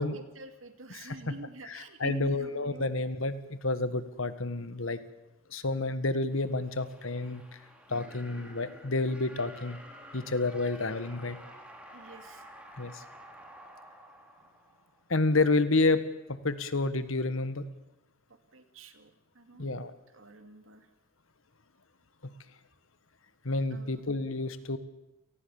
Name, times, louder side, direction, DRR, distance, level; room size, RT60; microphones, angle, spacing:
voice 1, 0.0-3.0 11.9-12.5 18.3-19.8 20.1-20.9 23.7-24.1, right 2 dB, 70° right, 8 dB, 2.5 m, -47 dB
voice 2, 0.9-1.3 1.7-5.0 5.5-7.4 7.9-9.8 10.1-11.4 12.8-13.0 15.1-16.0 16.3-17.6 19.6-19.9 23.4-24.8, left 2 dB, 75° left, 13 dB, 1.6 m, -29 dB
sound 1, 6.3-15.2, equal, 5° right, 3.5 m, -51 dB
29.0 x 19.0 x 7.2 m, 0.91 s
head